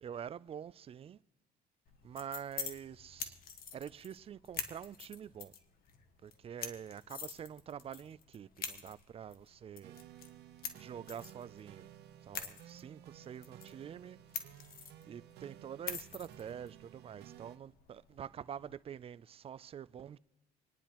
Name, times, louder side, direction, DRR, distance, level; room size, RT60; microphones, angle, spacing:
voice 1, 0.0-1.2 2.0-3.4 3.7-5.5 6.2-10.0 10.8-11.9 12.3-14.2 15.0-20.2, right 8 dB, 35° right, 0.4 m, -46 dB
sound 1, 1.9-18.8, left 7 dB, 60° left, 1.4 m, -47 dB
sound 2, 9.8-17.6, right 13 dB, 80° right, 0.9 m, -55 dB
27.5 x 10.0 x 3.0 m
cardioid pair, 110°, 17 cm